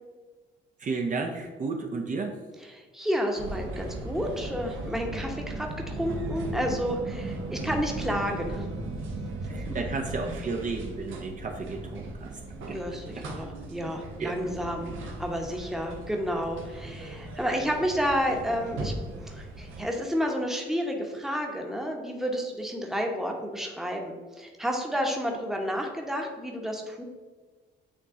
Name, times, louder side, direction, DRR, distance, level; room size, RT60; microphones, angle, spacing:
voice 1, 0.8-2.4 9.4-12.4 12.7-12.8 14.2-14.4, right 4 dB, 40° right, 2 dB, 0.7 m, -32 dB
voice 2, 2.7-8.7 12.7-27.0, equal, ahead, 2 dB, 0.9 m, -31 dB
sound 1, 3.4-19.8, right 2 dB, 80° right, 1.0 m, -37 dB
8.5 x 3.0 x 3.6 m, 1.4 s
cardioid pair, 90°, 20 cm